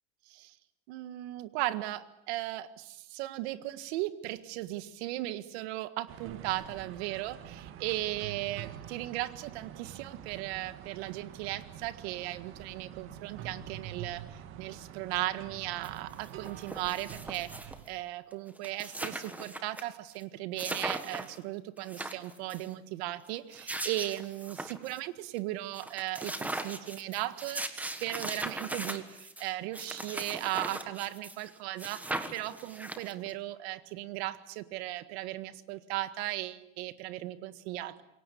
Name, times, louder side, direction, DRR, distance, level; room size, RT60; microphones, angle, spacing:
voice 1, 0.9-7.4 7.8-38.0, right 16 dB, 55° right, 13 dB, 1.8 m, -37 dB
sound 1, 6.1-17.8, right 10 dB, 35° right, 1.9 m, -46 dB
sound 2, 15.8-15.9 16.2-17.9 18.3-18.4 18.6-19.8 20.1-20.2 20.6-21.4 21.8-22.7 23.3-25.0 25.4-25.5 25.7-31.5 31.8-33.3, right 1 dB, 5° right, 1.5 m, -39 dB
27.5 x 23.0 x 8.6 m, 0.82 s
supercardioid pair, 170°, 37 cm